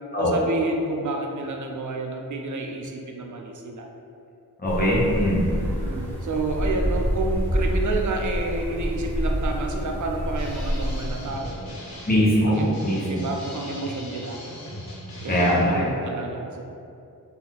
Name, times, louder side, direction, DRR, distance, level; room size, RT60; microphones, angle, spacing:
voice 1, 0.2-3.9 5.5-11.8 12.4-14.4 15.2-16.6, right 2 dB, 55° right, 2 dB, 0.6 m, -30 dB
voice 2, 4.6-5.4 12.1-13.0 15.3-15.8, equal, 25° left, -7 dB, 1.2 m, -21 dB
sound 1, 4.6-11.5, equal, 5° left, 0.9 m, -27 dB
sound 2, 10.4-15.9, equal, 75° left, 1.1 m, -39 dB
4.1 x 2.8 x 4.1 m, 2.6 s
wide cardioid pair, 85°, 37 cm